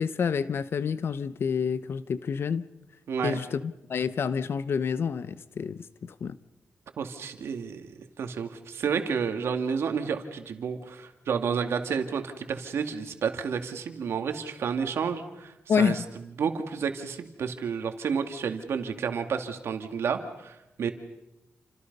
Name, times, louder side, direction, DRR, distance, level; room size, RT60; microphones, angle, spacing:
voice 1, 0.0-2.7 3.2-6.4 15.7-16.1, left 6 dB, 65° left, 1.0 m, -28 dB
voice 2, 3.1-3.4 7.0-16.0 16.4-20.9, right 6 dB, 80° right, 2.4 m, -31 dB
29.5 x 26.5 x 5.5 m
cardioid pair, 80°, 4 cm